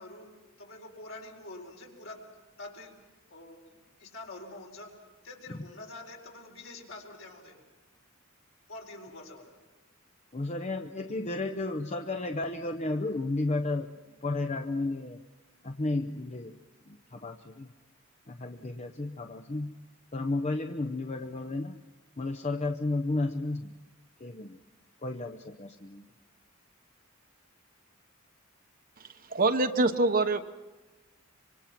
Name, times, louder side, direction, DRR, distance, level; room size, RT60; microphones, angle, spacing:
voice 1, 0.0-2.3 2.6-3.0 3.3-7.6 8.7-9.6, left 2 dB, 70° left, 1 dB, 4.4 m, -46 dB
voice 2, 10.3-15.2 15.6-16.6 16.8-17.7 18.3-19.7 20.1-21.8 22.2-23.7 24.2-24.6 25.0-26.1, left 2 dB, 35° left, 5 dB, 0.8 m, -33 dB
voice 3, 29.0-30.4, right 2 dB, 45° right, 8 dB, 1.0 m, -25 dB
25.0 x 25.0 x 5.9 m, 1.2 s
head